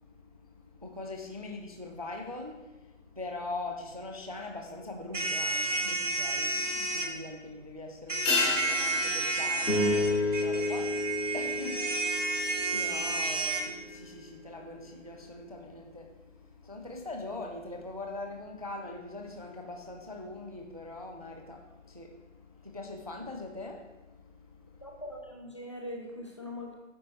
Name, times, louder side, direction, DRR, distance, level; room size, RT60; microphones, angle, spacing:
voice 1, 0.0-25.0, left 2 dB, 30° right, 3 dB, 0.4 m, -42 dB
sound 1, 5.1-7.1 8.1-13.6, right 3 dB, 70° right, 1.3 m, -31 dB
sound 2, 8.2-13.0 13.2-13.3, left 3 dB, 5° left, 1.0 m, -34 dB
sound 3, 9.6-14.1, left 2 dB, 80° left, 1.7 m, -32 dB
voice 2, 24.8-26.7, left 1 dB, 25° left, -1 dB, 0.6 m, -41 dB
8.6 x 4.1 x 3.1 m, 1.1 s
figure-of-eight pair, 155°, 39 cm